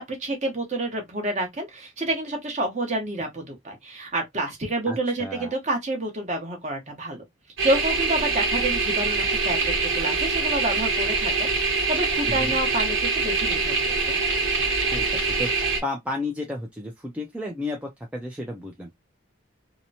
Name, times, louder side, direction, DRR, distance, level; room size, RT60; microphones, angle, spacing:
voice 1, 0.0-7.2 7.6-14.2, right 1 dB, 35° right, 0.9 m, -29 dB
voice 2, 4.9-5.5 12.3-12.6 14.9-18.9, left 2 dB, 5° right, 0.3 m, -33 dB
sound 1, 7.6-15.8, right 4 dB, 75° right, 1.0 m, -24 dB
2.8 x 2.0 x 2.6 m
head